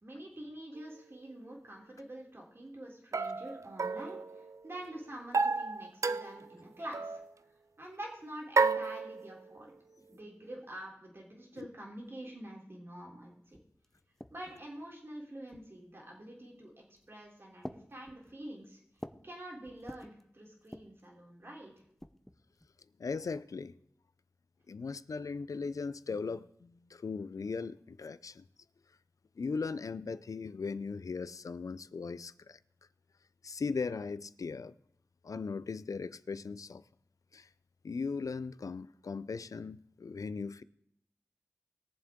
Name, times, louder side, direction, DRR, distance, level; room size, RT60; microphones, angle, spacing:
voice 1, 0.0-7.2 7.8-9.7 10.1-13.6 14.3-18.8 19.2-21.7, right 1 dB, 45° right, 3.2 m, -47 dB
sound 1, 0.8-0.9 3.1-4.8 5.3-6.5 6.9-7.3 8.6-9.6, right 4 dB, 65° right, 0.4 m, -32 dB
sound 2, 13.2-13.3 13.5-14.7 15.5-16.0 16.8-17.1 17.6-19.3 19.6-20.2 20.6-21.1 21.8-22.7, equal, 5° left, 0.6 m, -50 dB
voice 2, 23.0-23.7 24.7-28.4 29.4-32.6 33.4-34.7 35.2-36.8 37.3-37.5 37.8-40.6, left 4 dB, 80° left, 0.4 m, -38 dB
21.0 x 7.3 x 3.7 m
wide cardioid pair, 70°, 6 cm